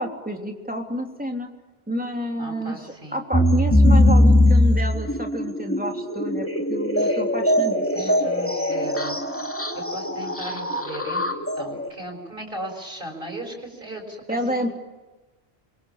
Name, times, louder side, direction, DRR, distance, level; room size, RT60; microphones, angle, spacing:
voice 1, 0.0-1.5 1.9-8.2 14.3-14.7, equal, 10° right, 2 dB, 3.2 m, -29 dB
voice 2, 2.4-3.2 7.0-7.2 7.9-9.2 9.7-11.2 11.6-14.7, right 1 dB, 55° right, 1 dB, 6.6 m, -37 dB
sound 1, 3.3-11.9, left 1 dB, 10° left, 2.6 m, -21 dB
27.5 x 24.0 x 7.3 m, 1.2 s
omnidirectional pair, 1.1 m